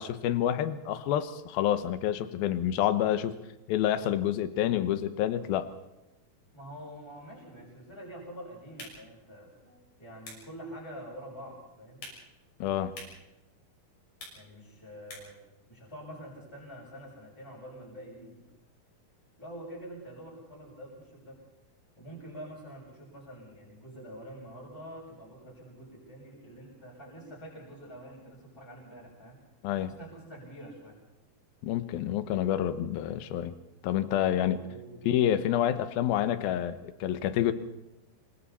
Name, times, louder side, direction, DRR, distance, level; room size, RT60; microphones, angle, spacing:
voice 1, 0.0-3.3 3.7-5.7 12.6-12.9 29.6-30.0 31.6-33.6 33.8-34.6 35.0-37.5, left 11 dB, 80° left, 11 dB, 2.8 m, -28 dB
voice 2, 6.5-12.0 14.3-15.4 15.7-18.4 19.4-21.4 22.0-29.4 29.8-31.0 34.4-35.1, right 1 dB, 5° left, -4 dB, 6.9 m, -46 dB
sound 1, 8.6-15.5, left 2 dB, 60° left, 7.7 m, -51 dB
27.5 x 24.5 x 4.3 m, 0.95 s
omnidirectional pair, 4.4 m